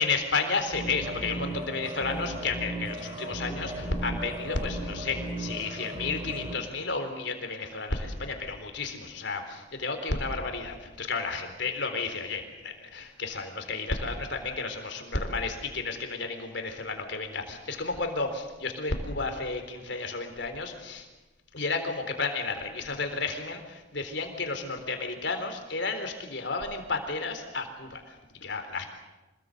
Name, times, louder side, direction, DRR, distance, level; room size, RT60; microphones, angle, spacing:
voice 1, 0.0-21.1 21.5-28.9, left 3 dB, 65° left, 6 dB, 3.9 m, -32 dB
sound 1, 0.7-6.5, right 1 dB, 25° right, 4.0 m, -36 dB
26.5 x 20.5 x 8.1 m, 1.1 s
head